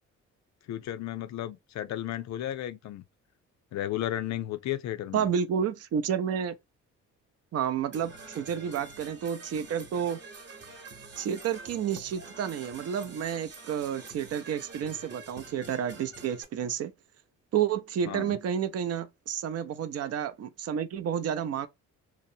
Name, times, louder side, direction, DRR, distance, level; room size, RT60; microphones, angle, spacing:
voice 1, 0.7-3.0 3.7-5.3 18.1-18.4, left 12 dB, 65° left, 0.5 m, -34 dB
voice 2, 5.1-6.5 7.5-10.2 11.2-16.9 17.5-21.7, right 8 dB, 55° right, 0.5 m, -30 dB
Percussion / Brass instrument, 7.9-16.4, right 3 dB, 35° right, 0.9 m, -47 dB
2.8 x 2.0 x 2.6 m
cardioid pair, 90°, 30 cm